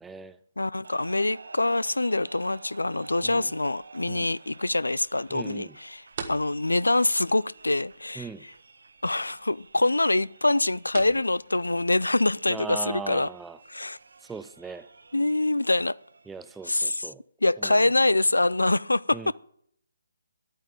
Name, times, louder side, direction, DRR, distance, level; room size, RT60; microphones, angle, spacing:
voice 1, 0.0-0.4 3.2-3.5 4.1-4.3 5.3-5.8 8.2-8.5 12.5-13.6 14.2-14.9 16.3-17.2 17.6-17.8 19.1-19.3, right 5 dB, 5° right, 0.4 m, -39 dB
voice 2, 0.6-6.0 6.3-8.3 9.0-13.3 13.7-14.0 15.1-16.0 16.7-17.1 17.4-19.2, left 2 dB, 85° left, 0.3 m, -25 dB
sound 1, 0.8-16.9, right 4 dB, 65° right, 0.9 m, -52 dB
sound 2, 2.8-15.4, right 5 dB, 45° right, 1.4 m, -49 dB
10.0 x 8.9 x 5.2 m
figure-of-eight pair, 145°, 0 cm